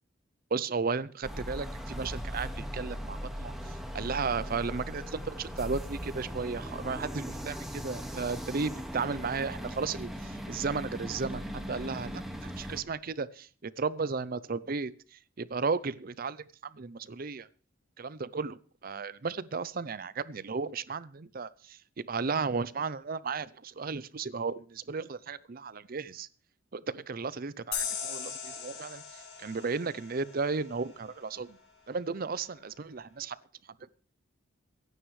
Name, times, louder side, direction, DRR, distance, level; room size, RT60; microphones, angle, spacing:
voice 1, 0.5-17.5 18.0-26.3 26.7-31.6 31.9-33.4, right 4 dB, 45° right, 18 dB, 0.5 m, -34 dB
sound 1, 1.2-12.8, equal, ahead, 1.7 m, -39 dB
sound 2, 27.7-31.1, left 7 dB, 60° left, 5.7 m, -39 dB
25.0 x 9.5 x 3.2 m, 0.43 s
head